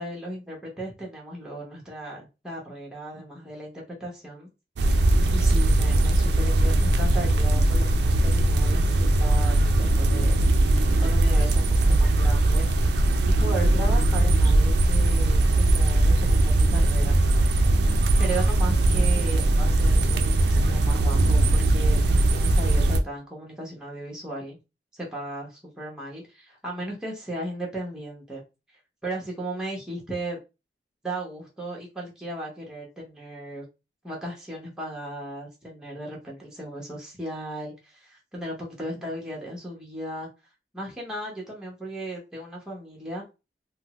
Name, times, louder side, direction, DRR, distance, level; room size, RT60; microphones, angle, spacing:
voice 1, 0.0-4.5 5.3-10.4 10.7-12.7 13.2-17.2 18.2-24.6 24.9-28.4 29.0-30.4 31.0-33.6 34.0-40.3 40.7-43.2, right 1 dB, 5° right, 0.8 m, -36 dB
sound 1, 4.8-23.0, right 2 dB, 70° right, 0.4 m, -20 dB
3.4 x 2.0 x 2.9 m
head